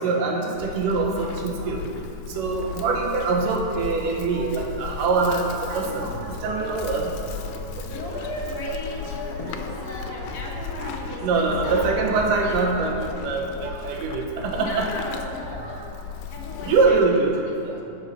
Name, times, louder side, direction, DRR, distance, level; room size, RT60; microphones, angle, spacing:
voice 1, 0.0-1.8 2.4-7.1 10.8-14.9 16.6-17.3 17.6-17.8, right 4 dB, 80° right, 0 dB, 2.6 m, -24 dB
Livestock farm animals working animals, 0.5-17.1, left 7 dB, 85° left, 2.3 m, -36 dB
sound 1, 4.5-13.1, equal, 30° right, 2.5 m, -39 dB
voice 2, 7.8-11.9 12.4-13.0 14.6-15.8 16.3-17.2 17.5-17.8, left 1 dB, 50° left, -3 dB, 1.2 m, -36 dB
13.5 x 5.4 x 5.6 m, 2.6 s
omnidirectional pair, 3.8 m